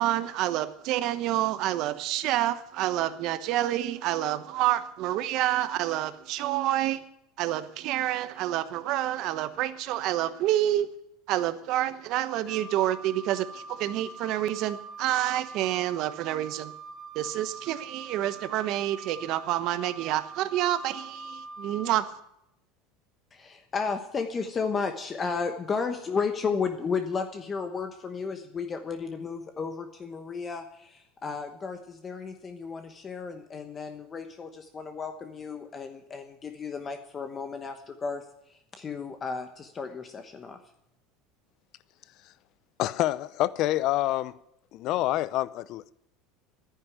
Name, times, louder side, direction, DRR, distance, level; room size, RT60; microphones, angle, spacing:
voice 1, 0.0-7.0 7.4-10.9 11.3-16.7 17.1-22.1, right 13 dB, 55° right, 1.1 m, -28 dB
Wind instrument woodwind instrument, 12.5-22.1, right 3 dB, ahead, 2.3 m, -43 dB
voice 2, 23.3-40.6, left 5 dB, 25° left, 1.1 m, -33 dB
voice 3, 42.8-44.4 44.7-45.9, left 15 dB, 50° left, 0.6 m, -27 dB
11.0 x 9.9 x 9.8 m
supercardioid pair, 135°, 0 cm